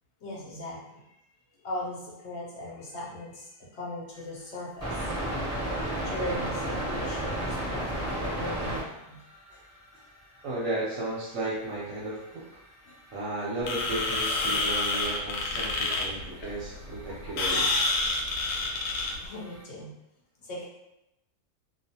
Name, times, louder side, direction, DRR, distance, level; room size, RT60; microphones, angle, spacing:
voice 1, 0.2-1.1 1.6-5.0 6.0-9.2 9.5-9.6 9.9-10.0 12.8-12.9 19.2-19.9 20.4-20.7, left 1 dB, 55° left, -5 dB, 0.9 m, -39 dB
sound 1, 4.8-8.8 9.2-10.1 10.4-10.5 10.7-12.5 12.9-19.6, right 1 dB, 5° right, 1.2 m, -35 dB
voice 2, 10.4-12.4 13.1-17.8, right 2 dB, 65° right, -6 dB, 0.9 m, -34 dB
sound 2, 13.6-19.3, left 2 dB, 90° left, 1.1 m, -28 dB
2.4 x 2.3 x 2.7 m, 0.88 s
omnidirectional pair, 1.6 m